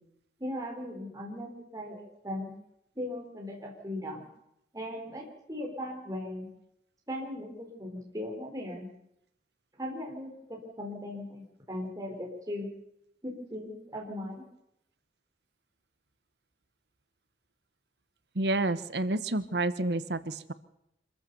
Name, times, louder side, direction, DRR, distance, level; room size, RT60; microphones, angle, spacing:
voice 1, 0.4-2.5 3.0-4.3 4.7-6.5 7.1-8.9 9.8-12.7 13.2-14.4, left 1 dB, 20° right, 0 dB, 4.5 m, -38 dB
voice 2, 18.3-20.5, right 2 dB, 65° right, 14 dB, 1.1 m, -29 dB
26.0 x 14.5 x 7.0 m, 0.80 s
head